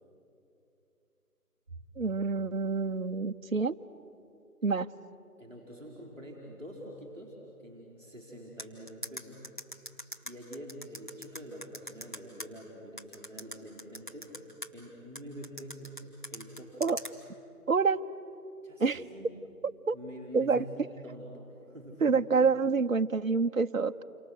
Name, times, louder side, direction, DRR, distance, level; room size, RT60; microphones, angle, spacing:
voice 1, 2.0-3.8 4.6-4.9 16.8-17.0 17.7-18.0 18.8-19.0 19.9-20.0 20.3-20.7 22.0-24.0, right 4 dB, 60° right, 7 dB, 0.9 m, -27 dB
voice 2, 5.4-9.5 10.2-14.4 14.7-16.0 16.3-16.8 18.6-19.3 19.9-22.1, equal, 10° right, -14 dB, 3.8 m, -46 dB
sound 1, 8.6-12.5 13.0-14.7 15.2-17.1, equal, 30° left, 1.7 m, -41 dB
29.0 x 24.5 x 8.1 m, 2.7 s
figure-of-eight pair, 180°, 45 cm